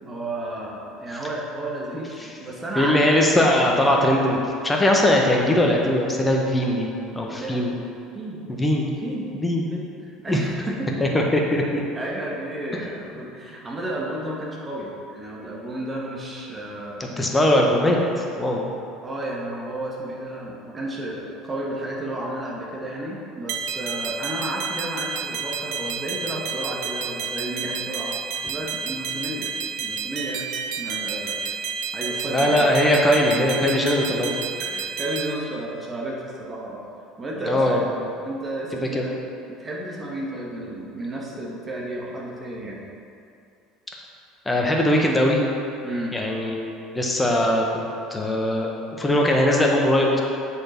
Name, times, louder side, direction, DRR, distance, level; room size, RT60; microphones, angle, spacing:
voice 1, 0.0-3.2 7.3-7.6 8.1-8.4 9.0-9.3 9.7-11.0 11.5-11.6 11.9-17.1 19.0-28.2 28.4-29.5 29.8-30.5 30.8-31.6 31.9-33.2 34.6-36.8 37.2-37.8 38.3-39.1 39.5-42.8 45.8-46.2, right 1 dB, 25° right, -3 dB, 1.9 m, -32 dB
voice 2, 2.7-6.9 7.1-7.8 8.5-8.9 9.3-9.7 10.3-10.4 11.0-11.8 17.2-18.7 32.3-34.3 37.4-37.9 38.8-39.0 44.4-45.4 46.1-48.7 49.0-50.2, left 1 dB, 15° left, 0 dB, 1.5 m, -20 dB
sound 1, 23.5-35.3, right 6 dB, 60° right, 0.6 m, -30 dB
8.0 x 6.6 x 4.6 m, 2.6 s
figure-of-eight pair, 65°, 0 cm